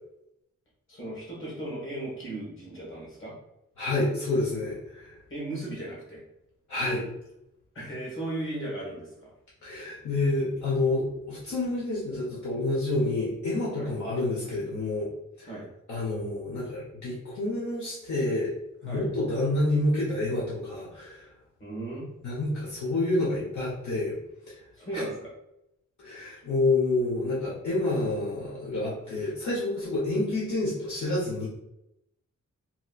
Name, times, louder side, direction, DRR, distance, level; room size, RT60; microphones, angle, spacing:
voice 1, 0.9-3.3 5.3-6.2 7.7-9.3 13.8-13.9 15.4-15.7 18.8-19.1 21.6-22.1 24.7-25.3, right 1 dB, 45° left, -5 dB, 1.3 m, -36 dB
voice 2, 3.8-5.1 6.7-7.0 9.6-15.1 15.4-15.5 15.9-18.5 18.8-21.3 22.2-24.2 26.0-31.5, left 2 dB, 70° left, -7 dB, 0.9 m, -28 dB
3.0 x 2.9 x 2.3 m, 0.85 s
wide cardioid pair, 135°, 30 cm